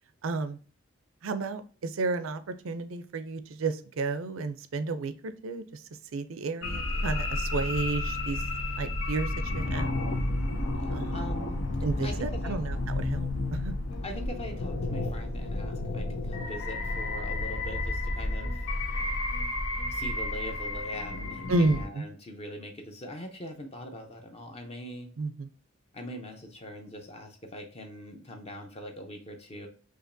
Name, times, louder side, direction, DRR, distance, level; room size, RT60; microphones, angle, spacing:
voice 1, 0.2-0.6 1.2-5.8 6.1-8.4 8.8-10.0 10.9-11.2 11.8-13.7 21.5-22.0 25.2-25.5, right 3 dB, 75° right, 11 dB, 0.5 m, -32 dB
sound 1, 6.6-21.9, left 2 dB, 80° left, 0.8 m, -31 dB
voice 2, 10.8-11.6 12.0-12.6 14.0-18.7 19.9-25.1 25.9-29.7, left 1 dB, 30° left, 3 dB, 0.6 m, -42 dB
4.9 x 2.9 x 2.6 m, 0.39 s
head